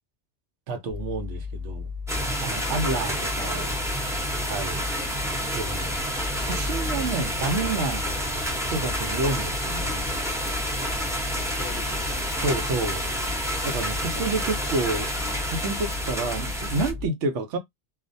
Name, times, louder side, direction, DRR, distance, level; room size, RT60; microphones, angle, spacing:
voice 1, 0.7-1.9 2.4-3.7 4.4-4.8 5.5-5.9 6.3-8.1 8.7-10.1 12.4-13.0 13.6-15.1 15.4-17.6, right 3 dB, 85° right, 0.9 m, -29 dB
sound 1, 0.9-17.1, left 4 dB, 60° right, 1.0 m, -35 dB
sound 2, 2.1-16.9, equal, 5° right, 0.5 m, -29 dB
voice 2, 2.9-4.0 11.3-12.2, left 6 dB, 55° left, 0.8 m, -46 dB
2.5 x 2.0 x 2.5 m
omnidirectional pair, 1.2 m